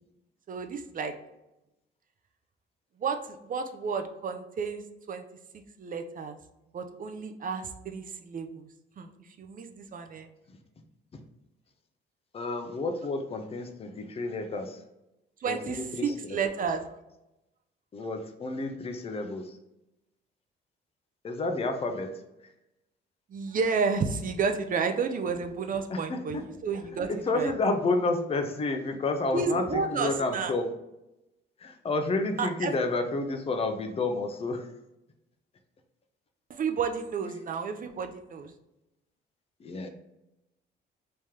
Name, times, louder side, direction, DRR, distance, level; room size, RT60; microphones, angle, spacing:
voice 1, 0.5-1.2 3.0-4.8 5.1-5.2 5.8-6.4 6.7-8.7 9.0-9.1 9.4-10.3 15.4-16.9 23.3-27.5 29.3-30.5 32.4-32.8 36.5-38.5, right 5 dB, 45° right, 6 dB, 0.5 m, -31 dB
voice 2, 12.3-14.8 15.5-16.1 17.9-19.6 21.2-22.1 25.9-26.4 27.1-30.7 31.6-34.7 39.6-39.9, left 2 dB, 30° left, 5 dB, 0.6 m, -30 dB
3.2 x 2.8 x 3.6 m, 0.91 s
cardioid pair, 90°, 20 cm